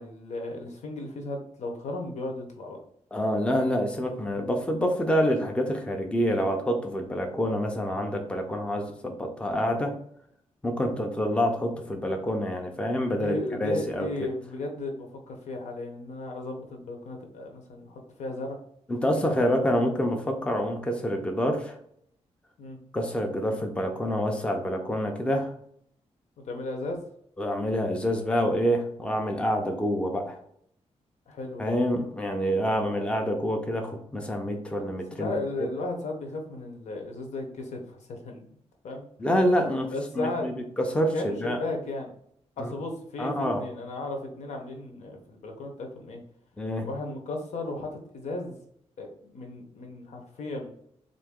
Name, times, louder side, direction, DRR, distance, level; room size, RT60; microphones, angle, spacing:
voice 1, 0.0-2.8 13.1-18.6 22.6-22.8 26.4-27.0 31.3-31.8 35.2-38.4 38.8-39.1 39.9-40.7 41.1-42.1 42.6-46.2 46.9-48.6 49.0-50.7, left 2 dB, 75° left, 2 dB, 0.9 m, -35 dB
voice 2, 3.1-9.9 10.6-14.3 18.9-21.8 22.9-25.5 27.4-30.4 31.6-35.3 39.2-41.6 42.6-42.7 43.2-43.6 46.6-46.9, equal, 10° left, 3 dB, 0.5 m, -27 dB
3.8 x 2.7 x 3.6 m, 0.68 s
wide cardioid pair, 170°, 12 cm